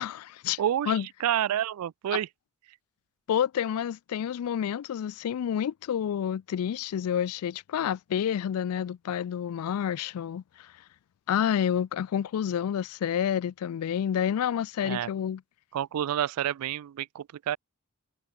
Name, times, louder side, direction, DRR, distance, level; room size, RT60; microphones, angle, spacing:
voice 1, 0.0-0.6 0.9-1.1 2.1-2.2 3.3-10.7 11.3-15.4, left 9 dB, 75° left, 0.3 m, -29 dB
voice 2, 0.6-2.3 14.8-15.1 15.7-17.6, right 10 dB, 80° right, 0.3 m, -29 dB
head